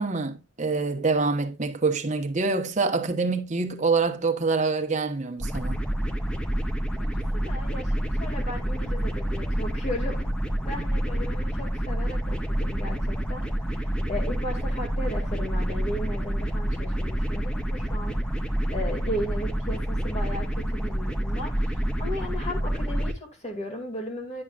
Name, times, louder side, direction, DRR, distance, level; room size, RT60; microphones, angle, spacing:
voice 1, 0.0-5.8, right 4 dB, 40° right, 1.0 m, -26 dB
sound 1, 5.4-23.1, right 1 dB, 5° left, 0.7 m, -28 dB
voice 2, 7.1-10.3 10.6-24.4, left 1 dB, 35° left, 2.0 m, -36 dB
9.8 x 6.4 x 2.4 m
head